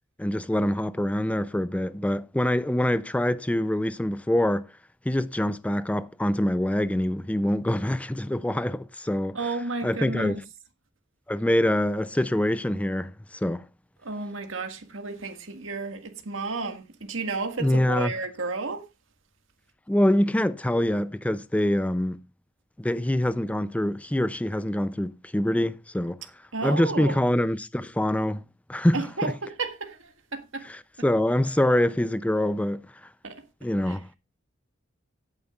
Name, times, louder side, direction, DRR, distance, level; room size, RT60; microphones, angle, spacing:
voice 1, 0.2-4.7 5.1-9.4 9.8-10.4 11.3-13.6 17.6-18.1 19.9-22.2 22.8-26.2 26.6-28.4 28.7-29.3 30.7-32.9 33.6-34.1, left 1 dB, 5° left, 0.4 m, -25 dB
voice 2, 9.3-10.4 14.0-18.9 26.5-27.3 28.9-30.6 31.0-31.1 33.2-33.4 33.8-34.0, right 3 dB, 80° right, 1.8 m, -32 dB
16.5 x 9.0 x 2.4 m
head